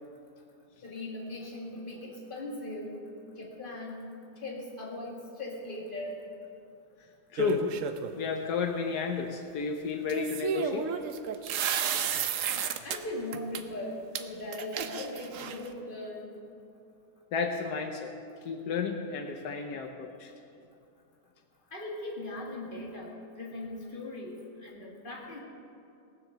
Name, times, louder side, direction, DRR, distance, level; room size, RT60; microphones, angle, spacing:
voice 1, 0.8-3.0 3.4-4.0 4.4-6.2 12.8-16.3 21.7-25.4, left 1 dB, 30° left, -2 dB, 2.3 m, -39 dB
voice 2, 7.3-7.7 8.1-10.9 17.3-18.1 18.4-20.3, left 5 dB, 80° left, 4 dB, 1.4 m, -32 dB
sound 1, 7.4-8.1 10.1-13.0 13.3-13.6 14.1-14.2 14.5-15.7, right 8 dB, 60° right, 1.0 m, -32 dB
18.5 x 7.2 x 6.8 m, 2.5 s
omnidirectional pair, 1.7 m